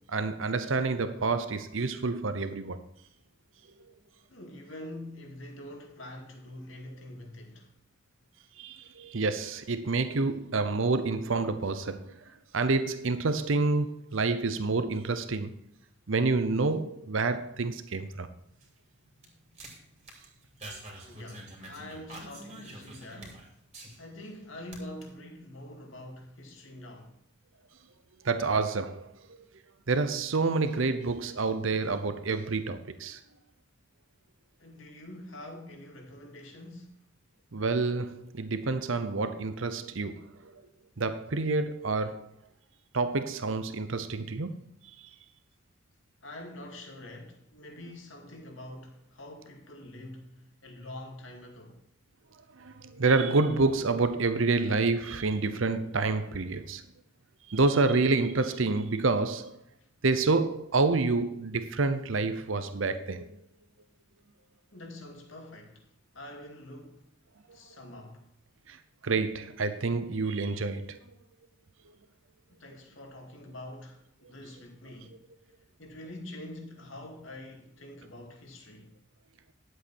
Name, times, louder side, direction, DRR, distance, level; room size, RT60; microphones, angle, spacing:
voice 1, 0.0-2.8 8.6-12.1 12.5-15.5 16.1-18.3 28.2-29.4 29.9-33.2 37.5-40.6 41.0-42.3 42.9-44.5 52.6-56.8 57.5-59.6 60.0-63.3 68.7-68.8 69.0-71.0, right 3 dB, 75° right, 0.8 m, -28 dB
voice 2, 4.3-7.7 21.1-23.5 24.0-27.1 34.6-37.1 39.0-39.1 46.2-51.8 59.8-59.9 64.7-67.1 67.5-68.3 72.5-75.2 75.8-78.9, left 1 dB, 70° left, 2.4 m, -45 dB
sound 1, 18.4-24.3 24.6-25.0, right 1 dB, 30° right, 2.8 m, -47 dB
11.5 x 7.8 x 4.4 m
head